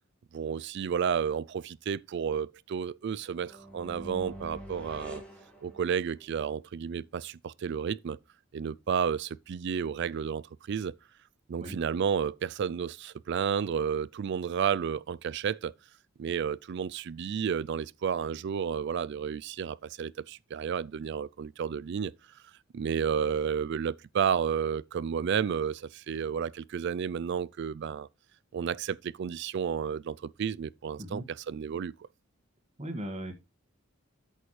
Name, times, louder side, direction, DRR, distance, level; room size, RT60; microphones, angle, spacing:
voice 1, 0.3-5.2 5.6-8.2 8.5-10.9 11.5-15.7 16.2-22.1 22.7-28.1 28.5-31.9, right 7 dB, 55° right, 0.3 m, -31 dB
sound 1, 3.3-6.3, equal, 5° left, 2.1 m, -45 dB
voice 2, 32.8-33.3, right 1 dB, 30° right, 1.7 m, -37 dB
8.5 x 6.8 x 3.2 m
head